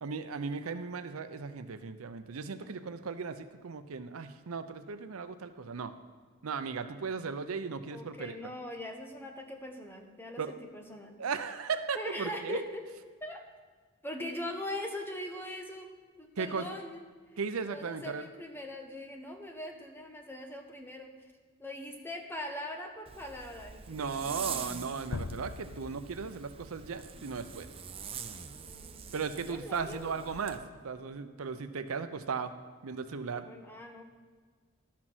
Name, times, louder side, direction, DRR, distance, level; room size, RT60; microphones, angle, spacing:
voice 1, 0.0-5.9 6.4-8.3 10.4-10.5 11.2-12.6 16.4-16.8 17.4-18.2 23.9-27.7 29.1-32.5 32.8-33.5, right 5 dB, 80° right, 10 dB, 0.6 m, -36 dB
voice 2, 7.9-11.2 11.9-12.8 13.2-13.4 14.0-15.9 16.2-17.0 17.6-21.1 21.6-24.3 28.6-29.1 29.5-30.3 33.3-34.0, left 1 dB, 10° left, 3 dB, 1.0 m, -41 dB
Zipper (clothing), 23.1-30.6, right 6 dB, 25° right, 0.5 m, -44 dB
sound 1, 25.1-27.1, left 4 dB, 85° left, 0.5 m, -42 dB
12.0 x 5.9 x 6.1 m, 1.5 s
head